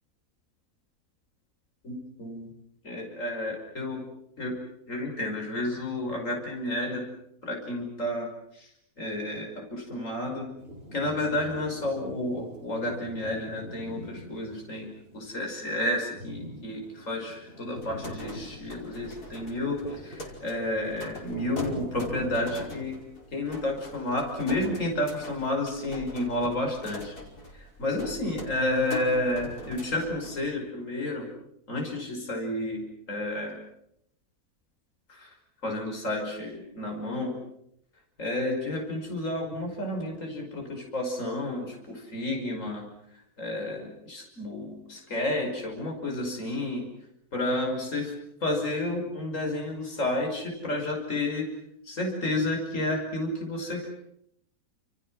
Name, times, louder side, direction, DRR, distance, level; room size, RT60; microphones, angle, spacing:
voice 1, 1.8-2.5 2.8-4.0 4.4-4.6 4.9-7.0 7.4-8.3 8.5-8.7 9.0-10.5 10.9-23.0 23.3-27.2 27.5-31.3 31.7-33.5 35.1-35.4 35.6-37.3 38.2-42.9 43.4-46.9 47.3-48.1 48.4-51.5 51.8-53.9, left 1 dB, 55° left, 1 dB, 6.0 m, -31 dB
sound 1, 10.6-22.8, equal, 40° right, 7.5 m, -44 dB
sound 2, 17.8-30.5, left 2 dB, 75° left, 5.7 m, -42 dB
30.0 x 28.5 x 6.2 m, 0.77 s
omnidirectional pair, 1.6 m